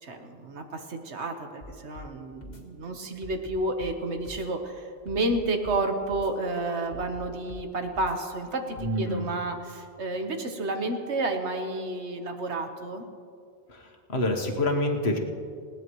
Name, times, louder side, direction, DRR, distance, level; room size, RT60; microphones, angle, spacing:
voice 1, 0.0-13.0, right 2 dB, 85° right, 5 dB, 1.6 m, -31 dB
sound 1, 1.6-2.1 2.4-2.6 3.2-4.0 4.3-4.5 5.1-5.8 6.1-6.3 6.9-7.6 7.9-8.2 8.8-8.9, left 1 dB, 40° left, 2.0 m, -44 dB
voice 2, 8.8-9.3 13.7-13.8 14.1-15.2, left 1 dB, 70° left, 3 dB, 1.7 m, -26 dB
20.5 x 17.5 x 3.1 m, 2.3 s
omnidirectional pair, 1.1 m